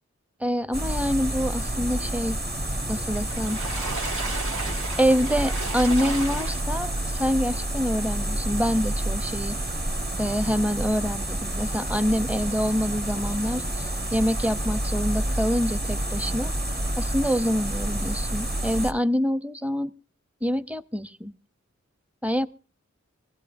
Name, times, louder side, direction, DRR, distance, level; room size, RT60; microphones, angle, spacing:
voice 1, 0.4-2.4 2.9-3.6 5.0-9.6 10.2-16.5 17.0-19.9 20.4-21.3 22.2-22.5, equal, 5° right, 12 dB, 0.7 m, -26 dB
sound 1, 0.7-18.9, right 1 dB, 35° right, 1.5 m, -29 dB
Water / Splash splatter, 3.1-7.0 7.5-7.6 8.0-8.1, right 3 dB, 80° right, 1.9 m, -34 dB
23.0 x 16.0 x 2.6 m, 0.36 s
wide cardioid pair, 50°, 29 cm